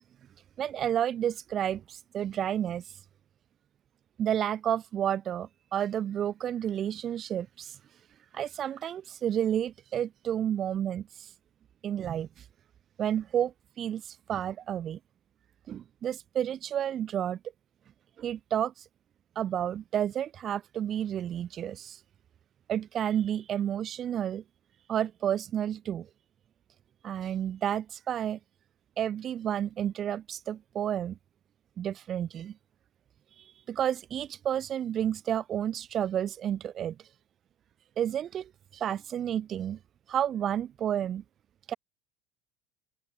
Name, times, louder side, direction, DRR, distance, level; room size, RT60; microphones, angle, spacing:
voice 1, 0.6-2.8 4.2-7.8 8.3-11.3 11.8-12.3 13.0-14.0 14.3-15.0 15.7-17.4 18.2-18.7 19.4-22.0 22.7-24.4 24.9-26.1 27.0-28.4 29.0-31.2 31.8-32.5 33.7-37.0 38.0-39.8 40.1-41.2 41.7-41.8, right 10 dB, 25° right, 0.5 m, -31 dB
open air
cardioid pair, 175°, 0 cm